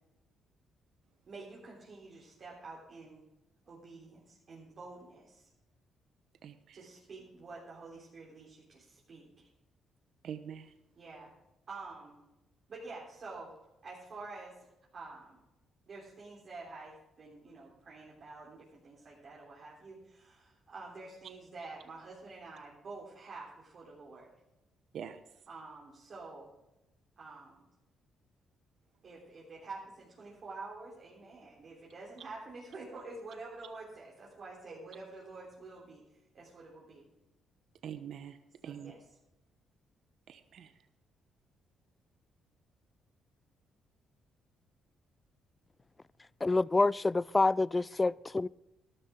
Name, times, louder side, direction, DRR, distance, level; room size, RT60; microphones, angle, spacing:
voice 1, 1.3-3.2 3.7-5.5 6.7-9.5 11.0-11.3 11.7-12.2 12.7-13.6 13.8-15.4 15.9-24.3 25.5-26.5 27.2-27.7 29.0-36.0 36.3-37.0 38.6-39.2, right 3 dB, 50° right, 3.7 m, -48 dB
voice 2, 6.4-6.8 10.2-10.7 24.9-25.2 37.8-38.4 38.6-38.9 40.3-40.7, right 8 dB, 70° right, 0.9 m, -43 dB
voice 3, 46.4-48.5, left 3 dB, 20° left, 0.3 m, -27 dB
13.0 x 12.5 x 3.8 m
cardioid pair, 90°, 0 cm